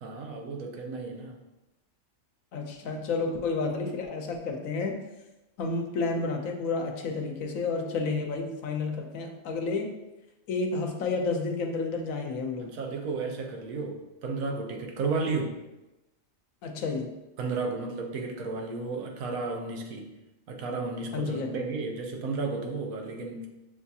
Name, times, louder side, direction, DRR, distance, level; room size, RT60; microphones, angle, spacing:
voice 1, 0.0-1.4 12.6-15.6 17.4-20.1 20.5-23.5, right 3 dB, 90° right, 2 dB, 1.1 m, -33 dB
voice 2, 2.5-5.0 5.6-9.9 10.5-12.7 16.6-17.1 21.1-21.6, left 3 dB, 85° left, 3 dB, 1.0 m, -30 dB
6.7 x 2.7 x 2.3 m, 1.0 s
omnidirectional pair, 1.4 m